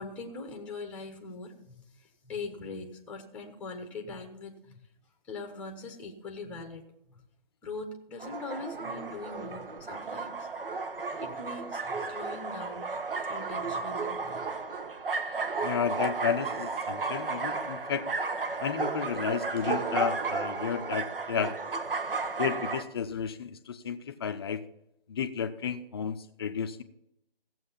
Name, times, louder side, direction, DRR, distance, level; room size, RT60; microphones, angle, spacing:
voice 1, 0.0-1.8 2.2-4.8 5.3-6.9 7.6-10.4 11.2-12.8 13.3-14.5, left 3 dB, 5° left, 4 dB, 1.0 m, -41 dB
sound 1, 8.2-22.8, right 4 dB, 70° right, 1.5 m, -33 dB
voice 2, 15.6-18.1 18.6-21.5 22.4-24.6 25.1-26.8, left 7 dB, 25° left, 9 dB, 0.6 m, -32 dB
15.5 x 7.8 x 5.7 m, 0.80 s
figure-of-eight pair, 155°, 29 cm